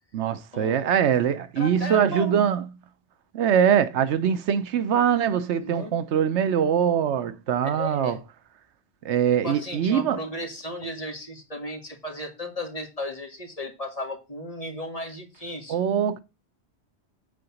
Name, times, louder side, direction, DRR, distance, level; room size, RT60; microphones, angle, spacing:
voice 1, 0.1-2.6 3.3-8.2 9.0-10.2 15.7-16.2, right 8 dB, 80° right, 1.0 m, -23 dB
voice 2, 1.6-2.4 5.6-6.0 7.6-8.2 9.4-15.8, left 1 dB, 35° left, 2.0 m, -35 dB
8.7 x 3.9 x 7.0 m
omnidirectional pair, 1.1 m